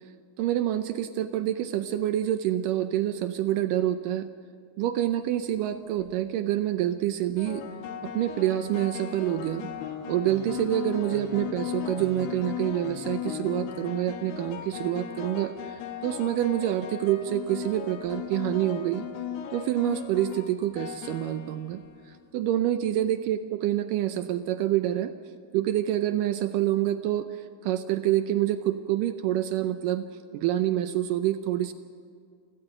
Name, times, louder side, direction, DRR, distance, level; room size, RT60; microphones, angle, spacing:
voice 1, 0.4-4.3 4.8-7.6 8.0-9.7 10.1-19.1 19.5-21.8 22.3-25.1 25.5-30.0 30.3-31.7, right 12 dB, 80° right, 10 dB, 1.9 m, -27 dB
sound 1, 5.8-6.1 7.4-22.2, left 9 dB, 85° left, 3.3 m, -37 dB
29.0 x 12.5 x 8.9 m, 2.2 s
omnidirectional pair, 4.6 m